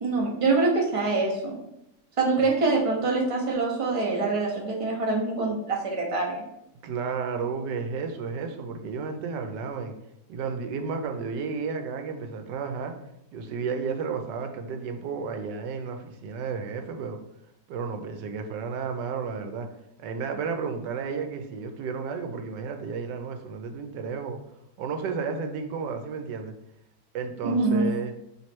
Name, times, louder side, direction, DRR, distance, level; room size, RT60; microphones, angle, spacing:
voice 1, 0.0-1.6 2.2-6.4 27.4-27.9, right 3 dB, 45° right, -1 dB, 0.4 m, -25 dB
voice 2, 6.8-9.9 10.3-12.9 13.3-17.2 17.7-19.7 20.0-24.4 24.8-26.5 27.1-28.1, right 5 dB, 90° right, 6 dB, 1.2 m, -32 dB
3.1 x 3.1 x 4.3 m, 0.82 s
omnidirectional pair, 1.8 m